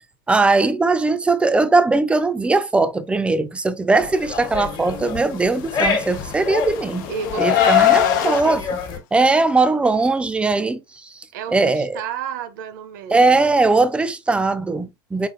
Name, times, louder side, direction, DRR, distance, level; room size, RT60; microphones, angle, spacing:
voice 1, 0.3-7.1 7.4-8.6 9.1-11.1 11.5-12.0 13.1-15.3, right 3 dB, 10° right, 0.6 m, -19 dB
sound 1, 4.0-9.0, left 5 dB, 40° left, 1.3 m, -27 dB
Car, 5.9-8.4, left 14 dB, 60° left, 0.6 m, -20 dB
voice 2, 7.1-8.6 11.3-13.4, right 8 dB, 60° right, 0.8 m, -31 dB
4.9 x 4.2 x 2.5 m
figure-of-eight pair, 80°, 11 cm